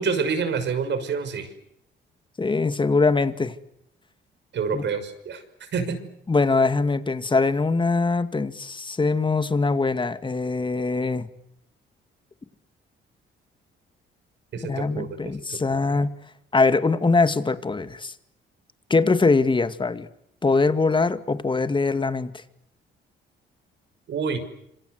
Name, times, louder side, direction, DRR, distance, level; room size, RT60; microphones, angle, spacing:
voice 1, 0.0-1.5 4.5-5.4 5.7-6.0 14.5-15.2 15.5-16.0 24.1-24.4, right 5 dB, 65° right, 10 dB, 6.1 m, -27 dB
voice 2, 2.4-3.5 4.7-4.8 6.3-11.3 14.6-16.1 16.5-18.1 18.9-20.1 20.4-22.3, left 3 dB, 25° left, 11 dB, 2.2 m, -22 dB
27.0 x 27.0 x 8.1 m, 0.78 s
cardioid pair, 90°, 20 cm